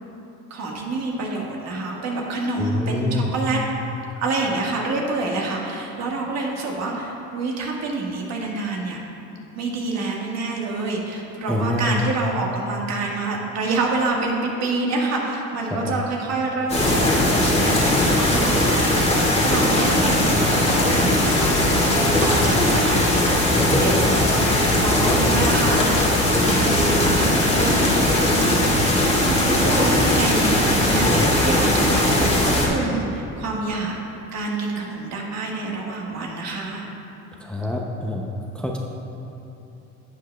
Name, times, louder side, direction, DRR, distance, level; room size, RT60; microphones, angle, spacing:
voice 1, 0.5-3.6 4.2-9.0 9.5-18.9 19.4-23.5 23.8-25.8 26.2-28.7 29.2-34.0 34.3-36.9, right 3 dB, 60° right, -1 dB, 1.5 m, -27 dB
voice 2, 2.6-3.3 11.5-12.0 15.7-16.0 25.0-25.4 37.4-38.3 38.5-38.8, left 2 dB, 5° left, 0 dB, 0.5 m, -26 dB
sound 1, 16.7-32.7, left 1 dB, 20° left, 1.5 m, -19 dB
11.0 x 8.2 x 2.3 m, 2.9 s
cardioid pair, 120°, 31 cm